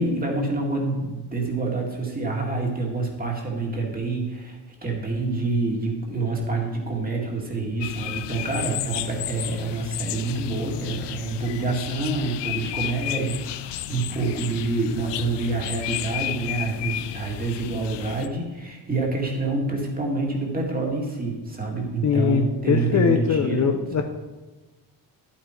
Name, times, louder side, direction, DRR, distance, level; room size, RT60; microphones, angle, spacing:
voice 1, 0.0-24.0, right 3 dB, 20° right, 0 dB, 2.3 m, -27 dB
sound 1, 7.8-18.3, left 13 dB, 80° left, 0.7 m, -33 dB
voice 2, 22.0-24.0, left 7 dB, 40° left, 6 dB, 0.8 m, -22 dB
11.0 x 8.7 x 4.5 m, 1.2 s
cardioid pair, 135°, 41 cm